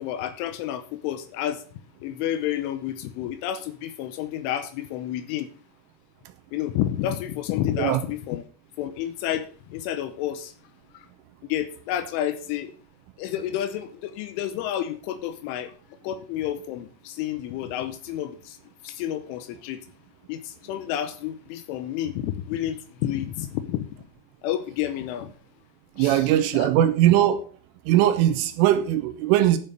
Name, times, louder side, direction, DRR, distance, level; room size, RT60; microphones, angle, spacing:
voice 1, 0.0-1.6 2.0-5.5 6.5-8.4 8.8-10.5 10.9-11.1 11.5-12.7 13.2-15.7 16.0-18.6 18.8-19.9 20.3-23.9 24.4-25.3 26.0-26.7, left 11 dB, 80° left, 3.0 m, -30 dB
voice 2, 26.0-27.4 27.9-29.6, right 12 dB, 80° right, 3.1 m, -20 dB
11.0 x 5.6 x 6.5 m
omnidirectional pair, 6.0 m